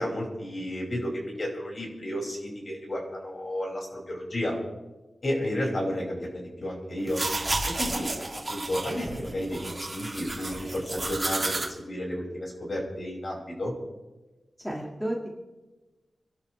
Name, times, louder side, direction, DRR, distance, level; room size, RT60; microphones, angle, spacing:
voice 1, 0.0-4.6 5.2-7.2 7.7-8.1 8.5-13.7, equal, 45° left, -2 dB, 5.6 m, -32 dB
sound 1, 7.0-11.6, right 2 dB, 25° right, 2.5 m, -32 dB
voice 2, 14.6-15.3, right 1 dB, ahead, -2 dB, 1.9 m, -32 dB
29.0 x 12.0 x 3.2 m, 1.1 s
wide cardioid pair, 140°, 0 cm